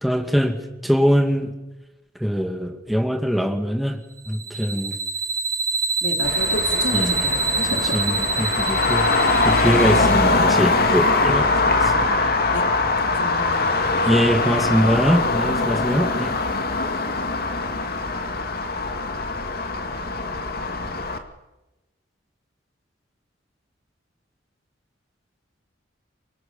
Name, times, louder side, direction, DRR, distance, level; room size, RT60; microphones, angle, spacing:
voice 1, 0.0-1.5 2.2-4.0 4.3-5.0 6.9-7.2 7.9-9.1 9.4-12.4 14.0-16.4, equal, ahead, 5 dB, 2.3 m, -22 dB
sound 1, 4.2-10.2, right 4 dB, 20° right, 2.4 m, -26 dB
voice 2, 6.0-7.9 9.6-9.8 12.5-13.8, left 2 dB, 80° left, 4 dB, 3.8 m, -32 dB
Traffic noise roadway noise, 6.2-21.2, left 3 dB, 55° left, 2.4 m, -22 dB
27.5 x 25.0 x 7.1 m, 1.0 s
head